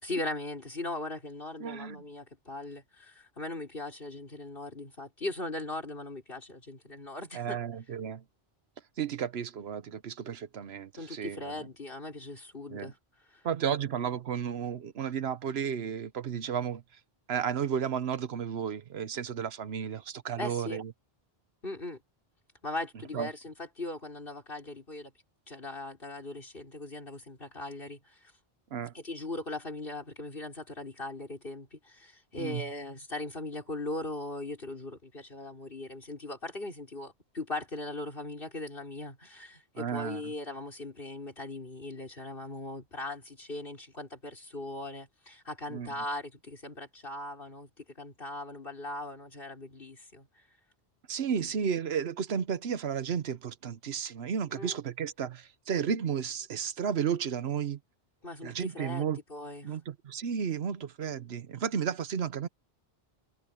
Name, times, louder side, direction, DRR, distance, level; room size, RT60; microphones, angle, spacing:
voice 1, 0.0-7.6 11.0-13.0 13.3-13.4 20.4-20.8 21.6-22.0 22.6-25.1 25.5-28.3 28.9-50.4 54.5-54.8 58.2-59.8, left 2 dB, 60° left, 4.9 m, -39 dB
voice 2, 1.6-2.0 7.3-8.2 9.0-11.5 12.7-12.9 13.4-16.8 17.3-20.9 23.1-23.3 28.7-28.9 32.4-32.6 39.8-40.2 45.7-45.9 51.1-57.8 58.4-59.2 59.6-62.5, right 7 dB, 80° right, 1.1 m, -33 dB
omnidirectional pair, 1.1 m